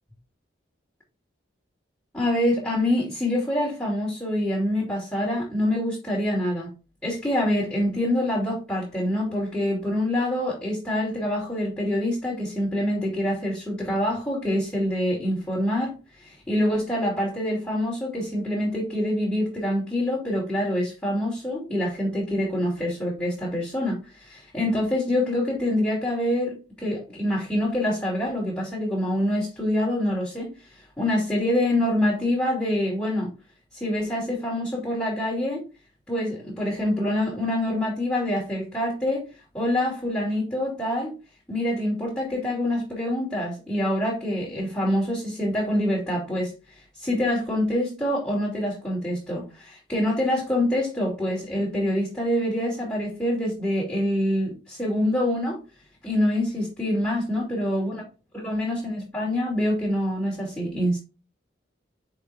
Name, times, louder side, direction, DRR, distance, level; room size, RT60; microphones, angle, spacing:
voice 1, 2.1-6.7 7.0-33.3 33.7-35.6 36.1-39.3 39.5-41.1 41.5-55.6 56.0-58.0 58.3-61.0, left 1 dB, 10° left, 2.6 m, -26 dB
6.6 x 4.8 x 2.9 m
head